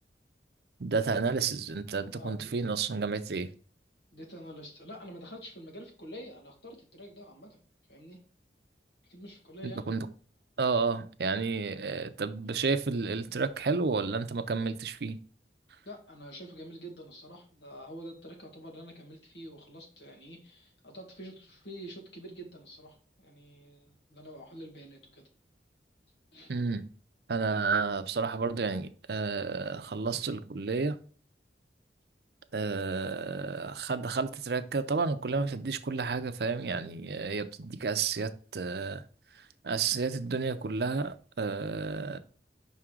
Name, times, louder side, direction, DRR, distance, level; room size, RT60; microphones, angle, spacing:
voice 1, 0.8-3.5 9.6-10.1 10.6-15.2 26.5-26.8 27.3-31.0 32.5-39.0 39.4-42.2, right 4 dB, 65° right, 0.6 m, -31 dB
voice 2, 2.2-2.5 4.1-7.6 7.9-8.2 9.0-9.9 15.8-25.3 26.3-26.5, equal, 90° left, 2.0 m, -47 dB
5.7 x 3.7 x 4.5 m
head